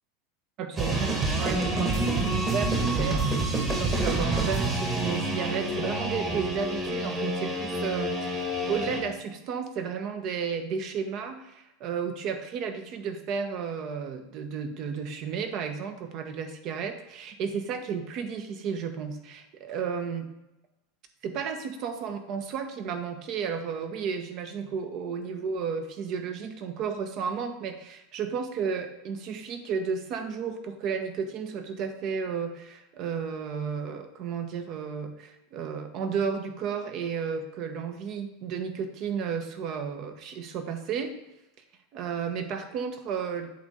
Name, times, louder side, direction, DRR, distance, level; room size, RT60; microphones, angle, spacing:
voice 1, 0.6-2.0 2.4-3.5 3.8-20.3 21.2-41.1 41.9-43.5, right 6 dB, 50° right, 7 dB, 1.0 m, -33 dB
sound 1, 0.8-9.0, right 2 dB, 25° right, 1.6 m, -28 dB
7.8 x 3.6 x 5.3 m, 0.91 s
hypercardioid pair, 90°, 0 cm